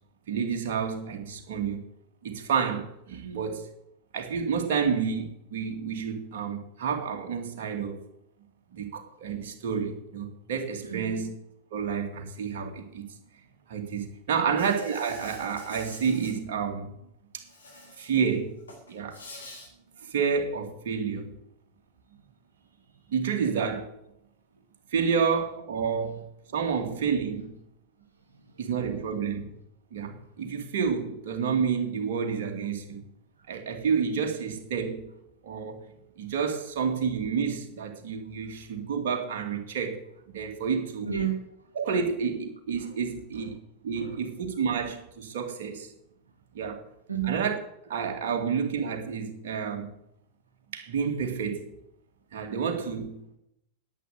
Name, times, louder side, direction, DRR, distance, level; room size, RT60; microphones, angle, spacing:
voice 1, 0.3-1.8 2.2-3.7 4.1-8.0 8.7-11.3 11.7-13.1 13.7-16.9 17.3-17.4 18.0-18.6 18.9-19.2 20.0-21.4 23.1-23.9 24.9-26.3 26.5-27.5 28.6-29.6 29.9-33.1 33.5-35.1 35.4-35.8 36.2-41.1 41.8-43.5 43.8-45.9 46.5-46.8 47.3-47.6 47.9-49.9 50.7-51.6 52.3-53.4, right 6 dB, 55° right, 2.5 m, -29 dB
voice 2, 3.2-3.5 10.8-11.2 14.3-14.6 17.7-18.0 19.1-19.2 19.9-20.0 22.1-22.2 22.9-23.0 26.5-26.8 28.2-28.7 33.4-33.5 38.4-38.5 41.0-41.7 42.8-42.9 43.3-43.5 43.9-44.2 44.5-44.6 46.7-46.8 47.1-47.3, right 8 dB, 80° right, 1.7 m, -36 dB
Insect, 14.6-16.3 17.4-18.3 18.6-19.7, left 2 dB, 75° left, 4.6 m, -47 dB
11.0 x 9.3 x 8.0 m
figure-of-eight pair, 90°, 0 cm